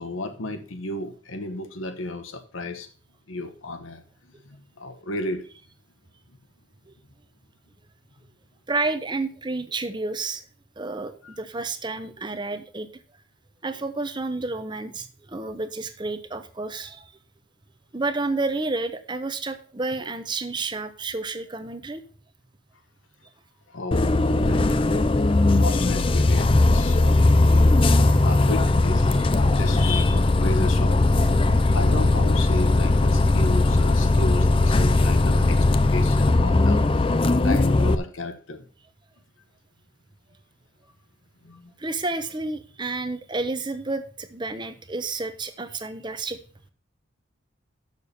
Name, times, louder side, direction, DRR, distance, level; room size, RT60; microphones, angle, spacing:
voice 1, 0.0-2.9 3.3-5.5 6.3-6.4 11.2-11.3 23.7-25.1 25.6-27.3 28.2-31.0 31.7-37.1 37.4-38.6 41.4-41.7, left 2 dB, 80° left, 7 dB, 1.2 m, -33 dB
voice 2, 8.7-10.4 10.8-12.9 13.6-17.1 17.9-22.0 41.8-46.4, right 3 dB, 20° right, 10 dB, 0.7 m, -30 dB
Bus, 23.9-37.9, left 2 dB, 25° left, 0.4 m, -19 dB
6.8 x 6.7 x 6.7 m, 0.40 s
head